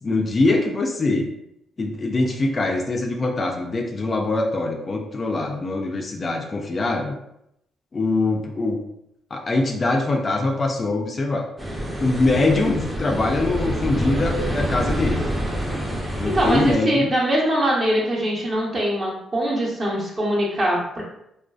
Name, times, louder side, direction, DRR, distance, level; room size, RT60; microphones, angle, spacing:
voice 1, 0.0-1.3 1.8-7.2 7.9-8.8 9.3-11.5 12.0-15.2 16.2-17.1, left 2 dB, 35° left, 2 dB, 0.3 m, -23 dB
sound 1, 11.6-16.8, equal, 10° right, 0.6 m, -26 dB
voice 2, 16.2-21.0, right 1 dB, 35° right, -3 dB, 0.8 m, -22 dB
2.4 x 2.3 x 2.3 m, 0.79 s
cardioid pair, 90°, 0 cm